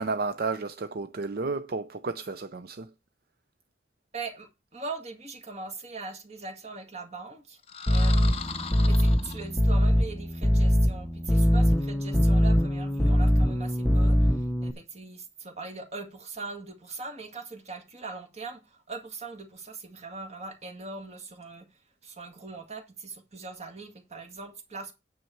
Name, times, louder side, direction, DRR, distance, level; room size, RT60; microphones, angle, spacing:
voice 1, 0.0-2.9, right 4 dB, 60° right, 0.6 m, -32 dB
voice 2, 4.1-7.6 7.9-8.5 8.9-21.7 22.0-24.9, right 3 dB, 40° right, 1.9 m, -41 dB
sound 1, 7.6-9.9, left 5 dB, 35° left, 0.9 m, -38 dB
sound 2, 7.9-14.7, equal, 5° left, 0.7 m, -22 dB
9.4 x 6.9 x 4.4 m
head